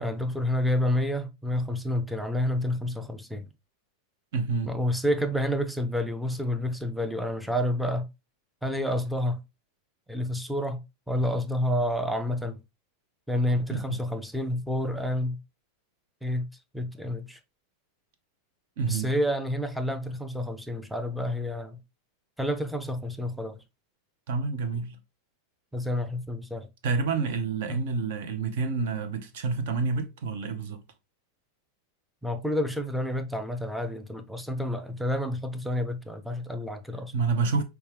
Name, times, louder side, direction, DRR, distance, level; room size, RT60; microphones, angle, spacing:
voice 1, 0.0-3.5 4.7-8.1 8.6-9.4 10.1-10.8 11.1-12.6 13.3-15.4 16.2-16.5 16.7-17.4 18.8-21.8 22.4-23.6 25.7-26.7 27.7-27.8 32.2-37.1, left 1 dB, ahead, 0.5 m, -29 dB
voice 2, 4.3-4.7 13.7-14.0 18.8-19.1 24.3-25.0 26.8-30.8 37.1-37.6, right 4 dB, 55° right, 0.7 m, -28 dB
5.4 x 2.3 x 3.2 m
figure-of-eight pair, 90°, 0 cm